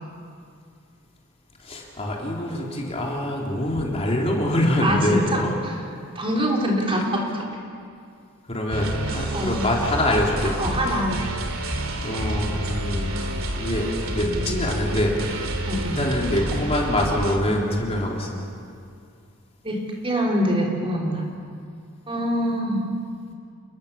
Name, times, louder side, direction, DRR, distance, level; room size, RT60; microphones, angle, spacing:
voice 1, 1.6-5.6 8.5-10.6 12.0-15.2 15.7-18.4, left 1 dB, 30° left, -2 dB, 3.7 m, -25 dB
voice 2, 4.8-5.2 5.6-5.7 6.2-7.4 9.1-9.6 10.6-11.2 15.7-16.0 19.6-21.2 22.1-22.8, equal, 25° right, -1 dB, 3.7 m, -24 dB
sound 1, 8.7-17.4, right 1 dB, 75° right, 2.7 m, -29 dB
29.5 x 21.5 x 7.1 m, 2.3 s
head